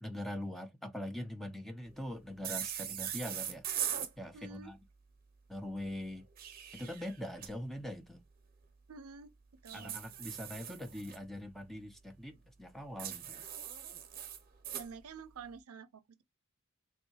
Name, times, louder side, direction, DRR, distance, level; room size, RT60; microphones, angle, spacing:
voice 1, 0.0-3.7 4.2-4.8 5.5-6.2 6.7-8.2 9.7-13.4, left 1 dB, ahead, 0.4 m, -42 dB
sound 1, 2.4-4.1 6.2-7.5 9.7-11.2 13.0-14.9, right 10 dB, 40° right, 0.7 m, -40 dB
voice 2, 4.3-4.7 8.9-9.3 9.6-10.0 14.7-16.2, right 5 dB, 75° right, 0.5 m, -49 dB
3.5 x 2.7 x 2.7 m
head